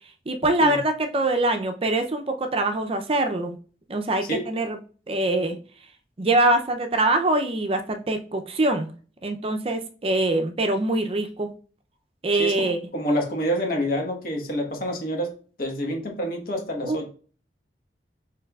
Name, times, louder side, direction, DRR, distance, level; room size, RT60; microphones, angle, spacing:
voice 1, 0.3-3.6 3.9-4.8 5.1-5.6 6.2-8.9 9.2-11.5 12.2-12.8 16.8-17.0, right 2 dB, 30° right, 6 dB, 0.5 m, -23 dB
voice 2, 12.4-15.3 15.6-17.1, equal, 50° left, 1 dB, 1.2 m, -27 dB
7.1 x 3.1 x 2.3 m, 0.40 s
head